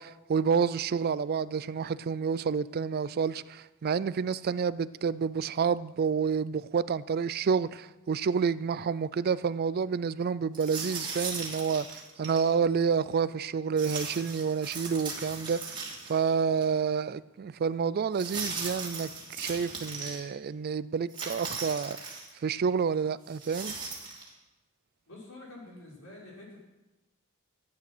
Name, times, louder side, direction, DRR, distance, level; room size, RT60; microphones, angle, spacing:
voice 1, 0.0-15.8 16.1-19.1 19.4-23.7, right 6 dB, 45° right, 17 dB, 0.4 m, -29 dB
sound 1, 10.5-12.5 13.8-16.3 16.6-16.7 18.1-20.2 21.1-22.3 23.3-24.3, right 4 dB, 20° right, 2.9 m, -38 dB
voice 2, 25.1-26.6, left 2 dB, 70° left, -4 dB, 5.2 m, -47 dB
14.0 x 9.6 x 6.1 m, 1.1 s
head